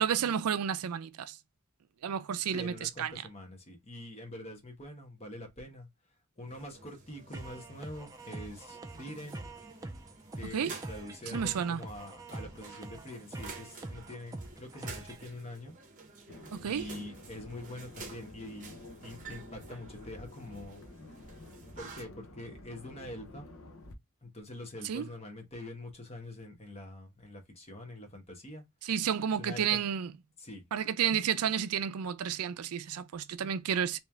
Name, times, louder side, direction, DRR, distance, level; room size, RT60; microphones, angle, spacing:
voice 1, 0.0-1.4 2.0-3.1 10.5-10.8 11.3-11.8 16.5-16.9 24.8-25.1 28.8-30.1 30.7-34.0, right 8 dB, 85° right, 0.4 m, -31 dB
voice 2, 2.5-5.9 6.4-9.4 10.3-15.7 16.6-18.8 19.0-20.8 21.8-23.5 24.2-28.6 29.4-29.8 30.4-30.7, left 1 dB, 30° left, 1.2 m, -45 dB
sound 1, 6.5-22.0, right 4 dB, 35° right, 0.9 m, -51 dB
sound 2, 7.3-15.3, right 2 dB, 15° right, 0.4 m, -45 dB
sound 3, 16.3-23.9, left 2 dB, 65° left, 0.9 m, -50 dB
3.2 x 2.9 x 3.4 m
head